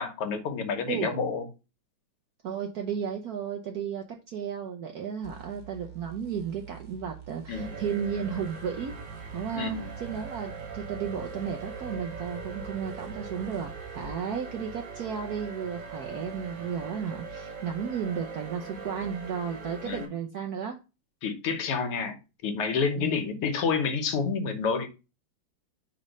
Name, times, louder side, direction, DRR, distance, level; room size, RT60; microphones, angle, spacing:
voice 1, 0.0-1.5 7.5-7.8 9.5-9.9 19.8-20.1 21.2-22.2 22.4-24.9, left 5 dB, 90° left, 7 dB, 2.0 m, -29 dB
voice 2, 0.9-1.2 2.4-9.0 9.3-20.8 23.0-23.2, right 7 dB, 70° right, 3 dB, 0.9 m, -34 dB
sound 1, 5.2-14.1, right 9 dB, 35° right, 0.8 m, -47 dB
sound 2, 7.5-20.0, right 4 dB, 55° right, 1.8 m, -41 dB
5.1 x 4.2 x 5.1 m, 0.29 s
omnidirectional pair, 2.4 m